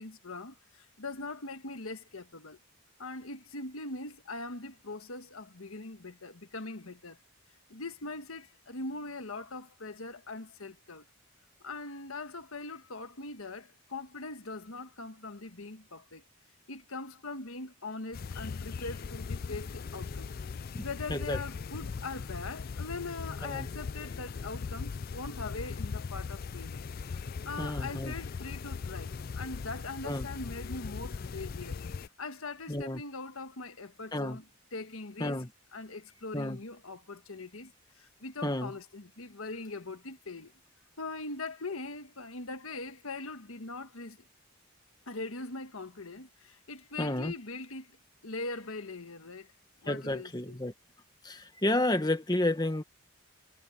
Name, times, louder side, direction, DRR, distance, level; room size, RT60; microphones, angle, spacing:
voice 1, 0.0-2.6 3.0-7.2 7.7-11.0 11.6-16.2 16.7-20.3 20.8-26.8 27.4-31.8 32.2-34.4 34.7-35.4 35.7-40.5 41.0-44.2 45.1-47.9 48.2-49.5 49.8-50.6, left 3 dB, 75° left, 1.5 m, -41 dB
sound 1, 18.1-32.1, left 5 dB, 40° left, 0.3 m, -39 dB
voice 2, 27.6-28.1 30.0-30.3 32.7-33.0 34.1-34.4 35.2-35.5 36.3-36.6 38.4-38.7 47.0-47.3 49.9-50.7 51.2-52.8, left 1 dB, 20° left, 1.3 m, -31 dB
head